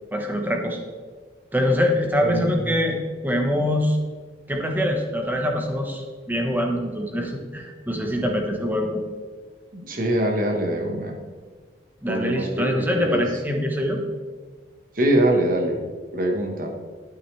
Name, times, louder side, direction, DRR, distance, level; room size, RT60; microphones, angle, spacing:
voice 1, 0.1-0.8 1.5-3.0 3.2-4.0 4.5-9.0 12.0-14.0, left 1 dB, 10° right, 2 dB, 1.3 m, -24 dB
voice 2, 2.2-2.7 9.7-11.2 12.1-13.2 14.9-15.8 16.1-16.7, right 1 dB, 50° right, 2 dB, 1.4 m, -23 dB
12.0 x 8.8 x 3.4 m, 1.5 s
head